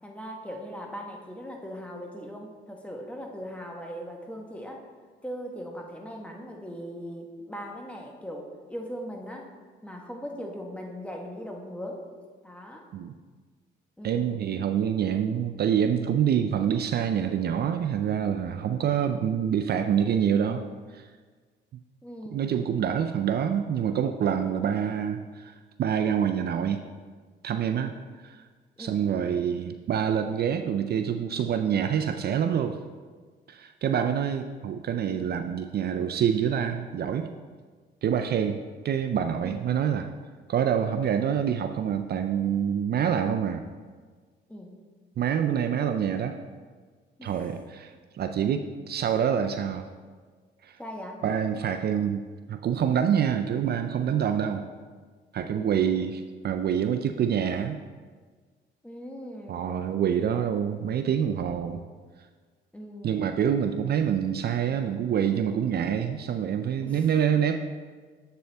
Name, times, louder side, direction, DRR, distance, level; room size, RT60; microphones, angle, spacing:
voice 1, 0.0-4.8 5.2-9.5 9.8-12.1 12.4-12.9 14.0-14.5 22.0-22.5 28.8-29.0 39.4-39.6 44.5-44.8 47.2-47.4 50.8-51.2 55.4-55.8 58.8-59.9 62.7-63.5 66.8-67.1, equal, 5° left, 1 dB, 1.2 m, -39 dB
voice 2, 14.0-20.6 20.9-21.1 22.3-26.8 27.4-28.0 28.2-28.4 28.8-32.8 33.5-37.3 38.0-38.6 38.8-40.1 40.5-43.7 45.2-46.4 47.2-49.9 50.6-50.8 51.2-54.6 55.3-57.8 59.5-61.8 63.0-67.6, right 8 dB, 55° right, 7 dB, 0.4 m, -26 dB
7.8 x 6.8 x 3.4 m, 1.5 s
cardioid pair, 90°, 20 cm